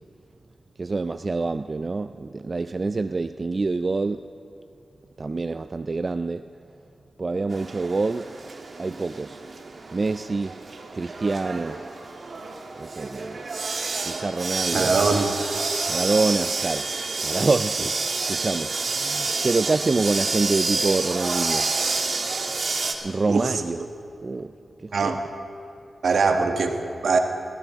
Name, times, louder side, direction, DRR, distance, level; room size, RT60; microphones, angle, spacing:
voice 1, 0.8-4.2 5.2-6.4 7.2-8.3 8.8-9.4 9.9-10.5 10.9-11.8 12.8-13.5 14.1-14.9 15.9-16.9 17.2-17.9 18.3-21.7 23.0-23.8 24.2-24.5 24.8-25.2, right 3 dB, 45° right, 10 dB, 0.3 m, -26 dB
sound 1, 7.5-22.9, right 3 dB, 60° right, 1.4 m, -29 dB
voice 2, 14.7-15.4 23.3-23.5 24.9-25.2 26.0-27.2, right 4 dB, 80° right, 4 dB, 1.2 m, -22 dB
21.0 x 15.5 x 3.5 m, 2.8 s
cardioid pair, 70°, 0 cm